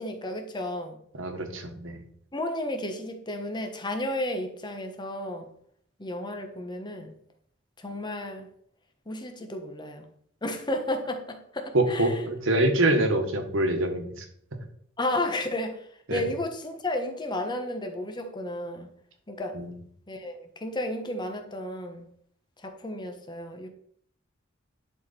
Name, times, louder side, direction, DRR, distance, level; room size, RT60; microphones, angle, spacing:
voice 1, 0.0-1.0 2.3-5.5 6.0-7.1 7.8-8.5 9.1-10.0 10.4-12.2 15.0-18.9 19.3-19.6 20.1-22.1 22.6-23.7, left 1 dB, 20° left, 1.1 m, -33 dB
voice 2, 1.2-2.0 11.7-14.1 16.1-16.2 19.5-19.7, right 1 dB, 75° right, 1.5 m, -25 dB
11.0 x 4.3 x 4.3 m
head